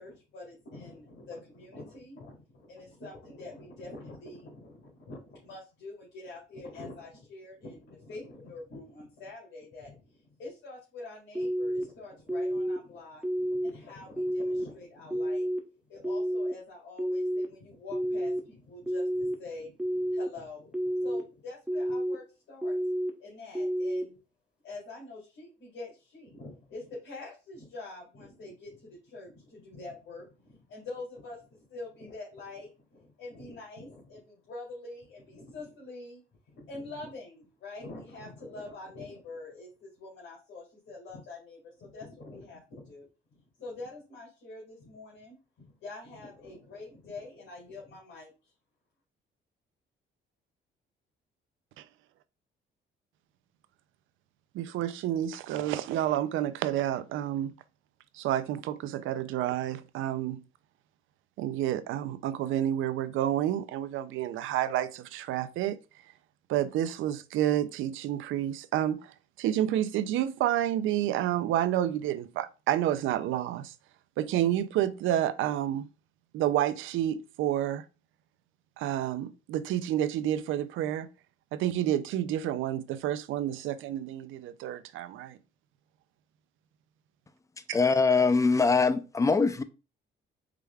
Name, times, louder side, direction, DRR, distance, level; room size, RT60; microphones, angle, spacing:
voice 1, 0.0-15.5 15.9-22.8 23.2-24.2 24.6-36.2 36.5-43.1 43.6-48.3, left 2 dB, 70° left, 2.1 m, -45 dB
sound 1, 11.3-11.8 12.3-12.8 13.2-13.7 14.2-14.6 15.1-15.6 16.0-16.5 17.0-17.5 17.9-18.4 18.9-19.3 19.8-20.3 20.7-21.2 21.7-22.2 22.6-23.1 23.5-24.0, equal, 5° right, 0.9 m, -30 dB
voice 2, 54.5-57.5 58.1-60.4 61.4-65.8 66.5-73.7 74.2-75.9 76.3-77.8 78.8-81.1 81.5-85.4, right 12 dB, 85° right, 0.4 m, -29 dB
voice 3, 87.7-89.6, left 4 dB, 15° left, 0.4 m, -23 dB
4.7 x 3.3 x 2.3 m
cardioid pair, 90°, 20 cm